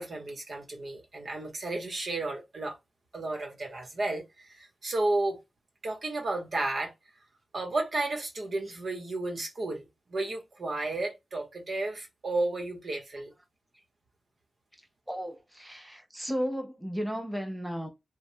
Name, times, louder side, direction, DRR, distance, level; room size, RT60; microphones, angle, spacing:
voice 1, 0.0-2.8 3.1-5.4 5.8-6.9 7.5-9.8 10.1-13.3, right 2 dB, 60° right, 0.9 m, -32 dB
voice 2, 15.1-17.9, equal, 5° right, 0.6 m, -34 dB
3.1 x 2.1 x 2.6 m
wide cardioid pair, 100°, 0 cm